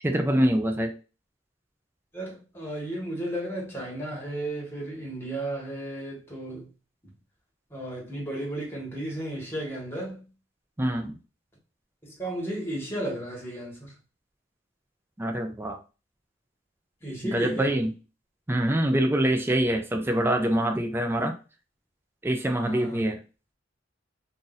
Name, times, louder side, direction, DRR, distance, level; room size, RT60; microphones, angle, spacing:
voice 1, 0.0-0.9 10.8-11.2 15.2-15.8 17.2-17.9 18.5-21.3 22.2-23.2, right 1 dB, 10° right, 0.4 m, -25 dB
voice 2, 2.1-6.7 7.7-10.3 12.0-13.9 17.0-17.7 22.6-23.0, right 1 dB, 15° left, 1.5 m, -34 dB
2.6 x 2.6 x 3.9 m
head